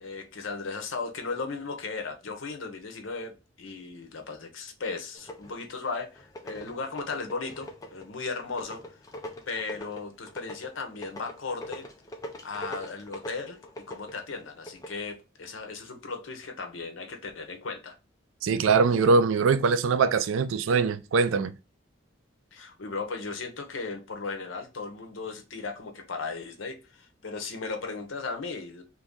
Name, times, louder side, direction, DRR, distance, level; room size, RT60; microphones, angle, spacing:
voice 1, 0.0-8.8 9.5-11.8 12.4-13.6 13.9-17.9 22.5-28.8, left 4 dB, 85° left, 0.7 m, -36 dB
sound 1, 5.2-5.8 6.2-15.0, left 1 dB, 20° left, 0.4 m, -42 dB
voice 2, 18.4-21.5, right 4 dB, 85° right, 0.4 m, -22 dB
2.9 x 2.6 x 3.6 m
head